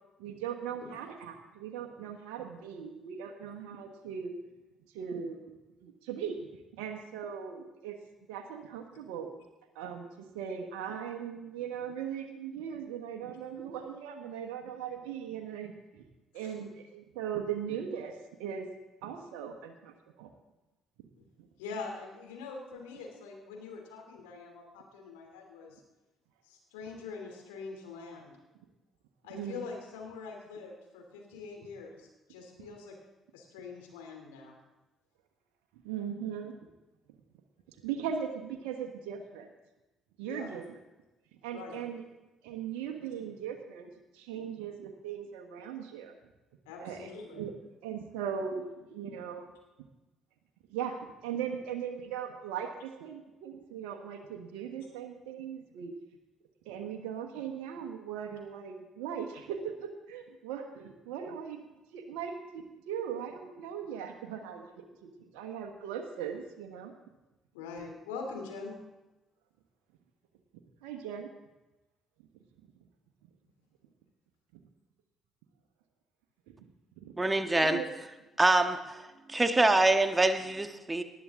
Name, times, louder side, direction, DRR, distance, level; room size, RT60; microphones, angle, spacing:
voice 1, 0.2-4.3 4.9-8.0 8.3-9.3 9.7-16.0 16.3-18.7 19.0-20.3 21.4-21.5 29.3-29.6 35.8-36.6 37.7-39.5 40.2-40.6 41.4-42.0 42.4-46.1 46.8-47.5 47.8-49.5 50.7-55.9 56.6-61.6 61.9-66.9 70.8-71.3 76.5-76.6 77.0-77.1 77.6-77.9, right 8 dB, 70° right, 4 dB, 1.2 m, -39 dB
voice 2, 21.6-25.8 26.4-28.3 29.2-33.0 33.3-34.6 37.8-37.9 40.3-40.5 41.5-41.8 46.6-47.5 67.5-68.7, left 4 dB, 75° left, 1 dB, 3.0 m, -44 dB
voice 3, 77.2-77.8 78.4-78.8 79.3-81.0, right 2 dB, 20° right, 7 dB, 1.5 m, -25 dB
19.5 x 11.5 x 3.8 m, 1.1 s
hypercardioid pair, 50°, 0 cm